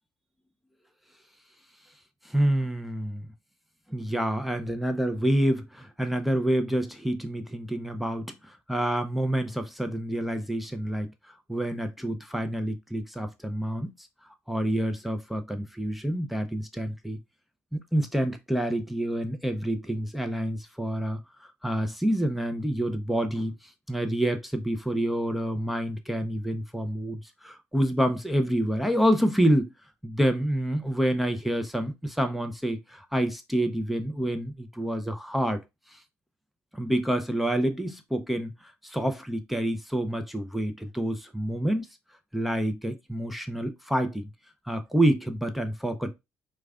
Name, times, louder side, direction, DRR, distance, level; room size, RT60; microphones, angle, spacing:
voice 1, 2.2-3.3 3.9-13.9 14.5-17.2 17.7-23.5 23.9-29.7 30.0-35.6 35.9-36.0 36.7-41.9 42.3-44.2 44.7-46.1, right 1 dB, ahead, 0.6 m, -28 dB
4.6 x 2.3 x 2.4 m
supercardioid pair, 75°, 6 cm